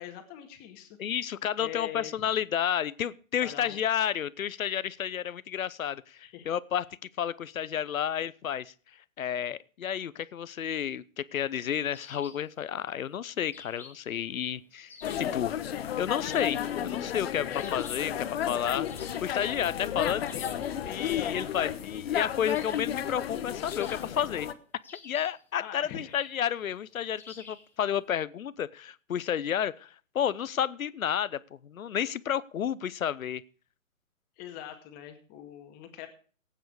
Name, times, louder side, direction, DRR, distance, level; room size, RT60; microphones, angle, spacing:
voice 1, 0.0-1.0 1.6-2.1 3.4-3.8 6.2-6.5 20.0-20.4 20.9-21.7 25.6-26.2 34.4-36.1, left 10 dB, 20° left, 5 dB, 2.2 m, -43 dB
voice 2, 1.0-6.8 7.2-8.7 9.2-14.9 15.2-15.6 16.0-20.2 20.8-24.5 25.0-29.9 30.1-33.4, left 9 dB, 70° left, 19 dB, 0.9 m, -31 dB
sound 1, 11.9-12.5 13.5-14.1 14.9-15.4 16.3-16.8 17.5-18.1 18.9-19.4 20.2-20.7 22.5-23.0 23.7-24.3 24.8-25.4 26.1-26.5 27.2-27.7, left 4 dB, 5° left, 0.9 m, -50 dB
sound 2, 15.0-24.5, left 10 dB, 45° left, 1.2 m, -33 dB
18.0 x 9.1 x 4.8 m, 0.42 s
hypercardioid pair, 145°, 42 cm